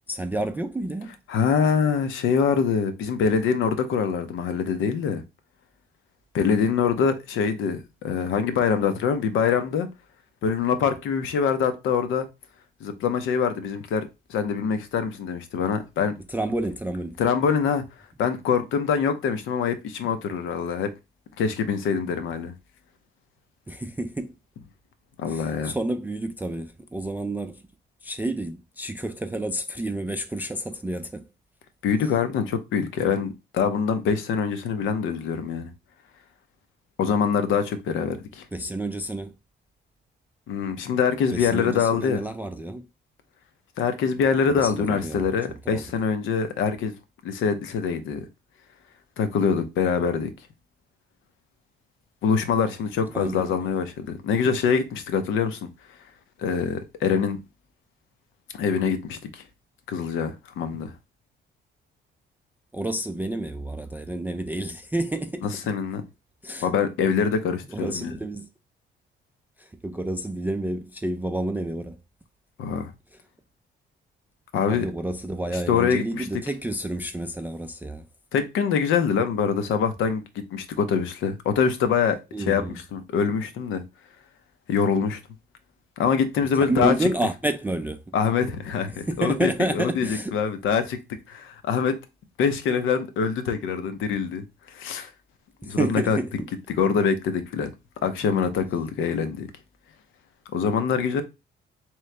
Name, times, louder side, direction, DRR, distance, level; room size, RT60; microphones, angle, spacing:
voice 1, 0.1-1.1 16.3-17.2 23.7-24.3 25.3-27.6 28.0-31.2 38.5-39.3 41.3-42.9 44.5-45.3 45.7-45.8 53.1-53.5 62.7-65.5 66.4-66.7 67.7-68.5 69.6-72.0 74.7-78.0 82.3-82.8 86.7-88.0 89.1-90.4 95.6-96.3, right 1 dB, 10° right, 0.3 m, -29 dB
voice 2, 1.3-5.2 6.3-9.9 10.4-12.3 12.8-16.1 17.2-17.8 18.2-20.9 21.4-22.5 25.2-25.7 31.8-35.7 37.0-38.4 40.5-42.2 43.8-46.9 47.2-48.2 49.2-50.3 52.2-55.7 56.4-57.4 58.5-59.4 59.9-60.9 65.4-66.0 66.6-68.2 72.6-72.9 74.5-74.9 75.5-76.3 78.3-80.2 80.5-83.8 84.7-85.2 86.0-87.1 88.1-91.0 91.3-91.9 92.4-94.4 94.7-95.1 95.7-96.2 96.7-97.7 98.0-99.5 100.5-101.2, left 6 dB, 85° left, 0.7 m, -24 dB
3.6 x 3.1 x 3.3 m
cardioid pair, 90°, 20 cm